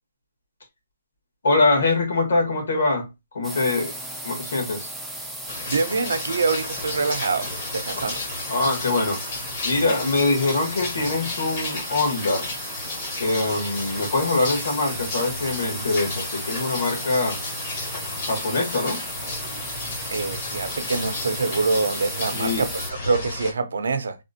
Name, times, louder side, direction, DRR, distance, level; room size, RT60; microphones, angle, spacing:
voice 1, 1.4-4.0 4.2-4.9 7.9-8.0 8.5-9.2 9.6-12.5 13.2-17.4 18.3-19.0 22.3-22.7, left 3 dB, 65° left, 1.8 m, -23 dB
sound 1, 3.4-22.9, right 1 dB, ahead, 0.3 m, -36 dB
sound 2, 5.5-23.5, left 2 dB, 30° left, 0.8 m, -33 dB
voice 2, 5.7-8.2 20.1-24.2, right 4 dB, 90° right, 0.6 m, -25 dB
3.6 x 2.5 x 2.6 m
hypercardioid pair, 175°, 0 cm